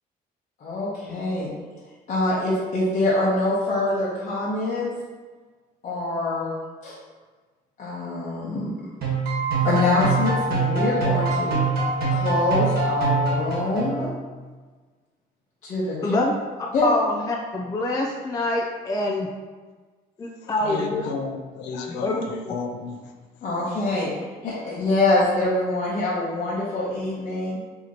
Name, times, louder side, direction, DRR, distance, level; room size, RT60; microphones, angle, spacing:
voice 1, 0.6-1.5 2.1-4.9 5.8-6.5 6.8-6.9 7.8-8.7 9.6-11.6 12.1-14.1 15.6-16.1 16.7-16.8 23.4-24.1 24.4-27.6, left 2 dB, 50° left, -7 dB, 0.9 m, -25 dB
sound 1, 9.0-14.2, right 3 dB, 65° right, 1.3 m, -24 dB
voice 2, 16.8-19.3 20.2-21.0 21.9-22.3, left 2 dB, 20° left, -1 dB, 0.4 m, -25 dB
voice 3, 20.6-23.0, left 4 dB, 90° left, 4 dB, 0.5 m, -32 dB
4.9 x 2.9 x 2.8 m, 1.4 s
cardioid pair, 110°, 17 cm